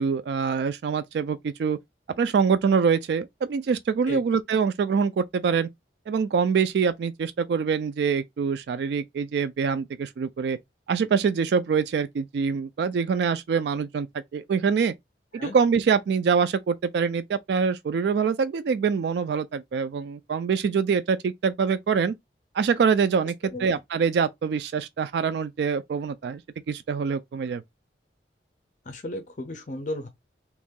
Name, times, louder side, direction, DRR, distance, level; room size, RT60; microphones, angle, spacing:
voice 1, 0.0-1.8 2.2-5.7 6.1-10.6 10.9-14.1 14.3-14.9 15.3-22.2 22.5-23.3 23.6-26.4 26.7-27.6, right 6 dB, 70° right, 0.3 m, -24 dB
voice 2, 28.8-30.1, left 1 dB, 45° left, 0.5 m, -34 dB
3.0 x 2.6 x 3.6 m
head